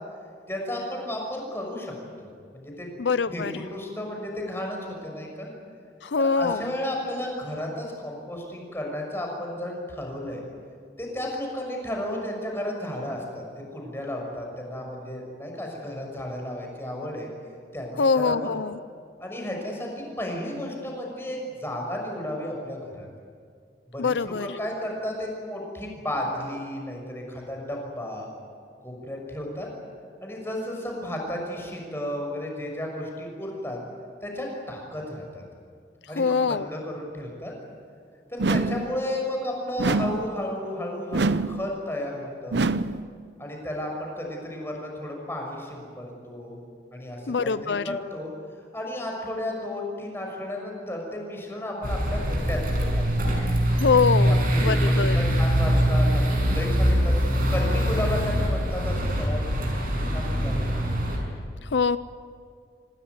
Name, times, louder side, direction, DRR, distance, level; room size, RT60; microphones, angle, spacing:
voice 1, 0.5-1.9 2.2-2.9 3.3-5.5 6.2-10.4 11.0-13.4 13.7-17.3 17.7-18.5 19.2-23.1 23.9-28.3 28.8-29.7 30.2-33.8 34.2-35.4 36.1-37.5 38.3-42.6 43.4-46.6 46.9-48.3 48.7-53.3 54.2-57.2 57.5-59.5 60.1-60.7, left 1 dB, 15° left, 0 dB, 6.2 m, -33 dB
voice 2, 3.0-3.5 6.0-6.6 18.0-18.8 24.0-24.5 36.2-36.7 47.3-47.9 53.7-55.2 61.6-62.0, left 5 dB, 85° left, 15 dB, 0.6 m, -24 dB
sound 1, 38.4-38.9 39.8-40.3 41.1-41.6 42.5-43.0, right 3 dB, 80° right, 0.7 m, -25 dB
sound 2, 51.8-61.2, equal, 50° right, 6.5 m, -23 dB
26.5 x 18.5 x 9.6 m, 2.1 s
head